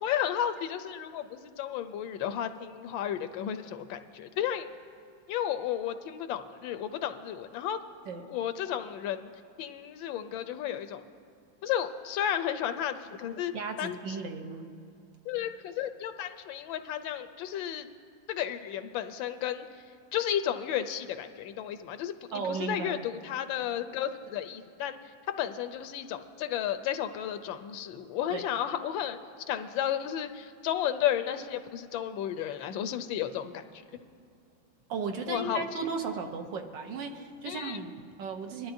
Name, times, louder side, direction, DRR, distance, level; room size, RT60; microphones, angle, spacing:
voice 1, 0.0-4.7 5.3-7.8 8.3-9.3 9.6-11.0 11.6-13.5 13.8-14.0 15.3-17.9 18.3-19.7 20.1-25.0 25.3-29.2 29.5-33.5 35.3-35.6 37.5-37.8, left 10 dB, 80° left, 9 dB, 1.3 m, -33 dB
voice 2, 13.5-14.7 22.3-23.1 28.3-28.4 34.9-38.7, right 5 dB, 70° right, 4 dB, 1.5 m, -35 dB
21.5 x 12.0 x 2.6 m, 2.5 s
omnidirectional pair, 2.1 m